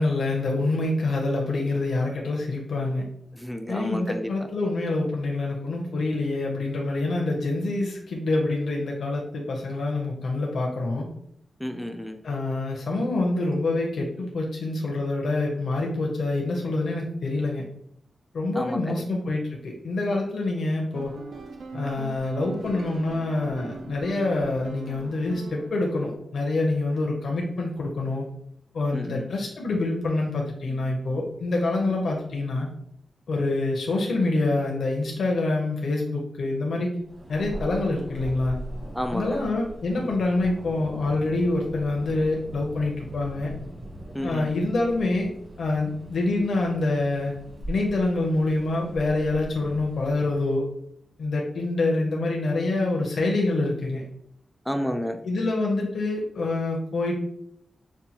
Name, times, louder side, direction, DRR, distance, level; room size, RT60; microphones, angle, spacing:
voice 1, 0.0-3.0 3.7-11.1 12.2-17.6 18.3-21.1 21.7-28.2 28.7-32.7 33.3-36.9 37.3-38.6 39.1-43.5 44.2-45.3 45.6-47.3 47.7-50.6 51.2-54.0 55.2-57.1, left 2 dB, 75° left, 0 dB, 0.6 m, -26 dB
voice 2, 3.3-4.3 11.6-12.2 18.5-19.0 28.9-29.3 38.9-39.4 44.1-44.5 54.7-55.2, equal, ahead, 6 dB, 0.3 m, -31 dB
sound 1, 20.9-26.2, right 4 dB, 75° right, 0.4 m, -40 dB
Thunder, 37.0-50.7, right 1 dB, 45° right, 1.3 m, -41 dB
5.2 x 2.2 x 2.8 m, 0.71 s
wide cardioid pair, 150°, 0 cm